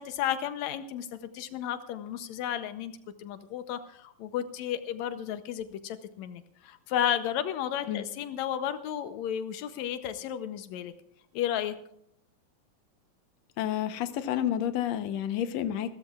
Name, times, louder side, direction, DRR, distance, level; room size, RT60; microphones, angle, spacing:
voice 1, 0.0-2.9 3.2-10.9 11.3-11.7, left 10 dB, 90° left, 10 dB, 1.5 m, -33 dB
voice 2, 13.6-15.9, left 10 dB, 75° left, 10 dB, 1.6 m, -30 dB
28.0 x 13.5 x 2.4 m, 0.71 s
omnidirectional pair, 4.2 m